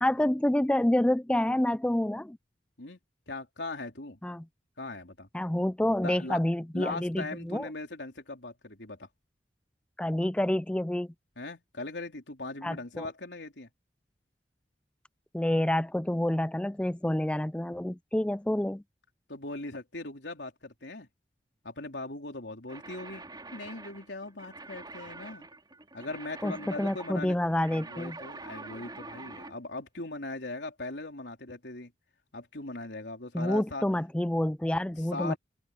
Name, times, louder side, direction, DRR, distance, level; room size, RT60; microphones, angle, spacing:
voice 1, 0.0-2.4 4.2-4.4 5.3-7.7 10.0-11.1 12.6-13.1 15.3-18.8 26.4-28.2 33.3-35.3, left 1 dB, 5° left, 0.4 m, -28 dB
voice 2, 3.3-4.2 4.8-5.3 6.0-6.4 6.7-9.1 11.4-13.7 19.3-21.1 21.6-23.3 23.5-25.5 25.9-27.4 27.7-31.9 32.3-33.8 35.1-35.4, left 2 dB, 90° left, 3.8 m, -39 dB
sound 1, 22.7-29.6, right 3 dB, 25° right, 5.2 m, -46 dB
open air
head